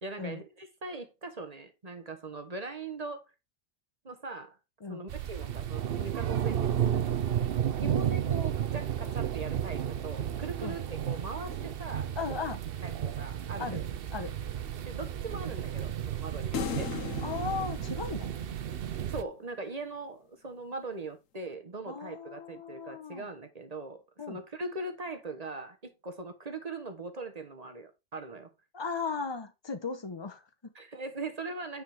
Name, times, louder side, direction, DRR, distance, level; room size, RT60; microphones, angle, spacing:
voice 1, 0.0-3.2 4.0-4.6 4.9-7.5 7.8-12.4 12.8-13.8 14.8-17.0 19.1-28.5 30.7-31.8, right 3 dB, 30° right, 1.1 m, -40 dB
sound 1, 5.1-19.2, right 9 dB, 55° right, 0.7 m, -32 dB
voice 2, 12.2-12.6 13.6-13.8 14.1-14.3 17.2-18.3 21.9-23.3 24.2-24.4 28.7-30.7, left 5 dB, 20° left, 0.9 m, -37 dB
sound 2, 16.5-18.9, left 10 dB, 65° left, 1.2 m, -38 dB
9.0 x 5.0 x 3.4 m
omnidirectional pair, 1.5 m